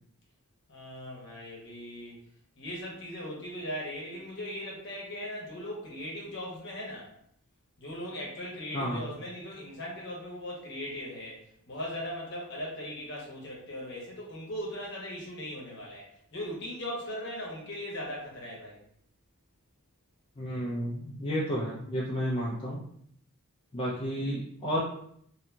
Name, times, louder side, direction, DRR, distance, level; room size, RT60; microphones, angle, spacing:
voice 1, 0.7-2.2 2.6-7.1 7.8-18.8, equal, 55° left, -3 dB, 0.8 m, -39 dB
voice 2, 20.4-22.8 23.7-24.8, equal, 25° left, -6 dB, 0.3 m, -31 dB
2.7 x 2.6 x 2.2 m, 0.67 s
head